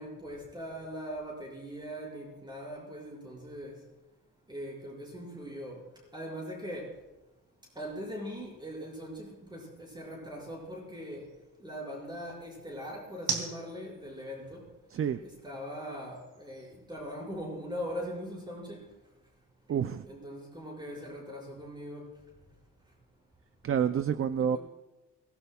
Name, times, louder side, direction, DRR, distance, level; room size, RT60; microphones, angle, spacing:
voice 1, 0.0-3.8 4.5-5.8 6.1-6.9 7.8-11.3 11.6-14.6 15.2-18.8 20.1-22.1 24.4-24.6, equal, 15° right, -3 dB, 5.7 m, -41 dB
sound 1, 3.5-17.7, right 5 dB, 85° right, 3.2 m, -46 dB
voice 2, 19.7-20.1 23.6-24.6, right 8 dB, 45° right, 11 dB, 0.4 m, -28 dB
22.5 x 18.0 x 2.3 m, 1.1 s
wide cardioid pair, 175°, 32 cm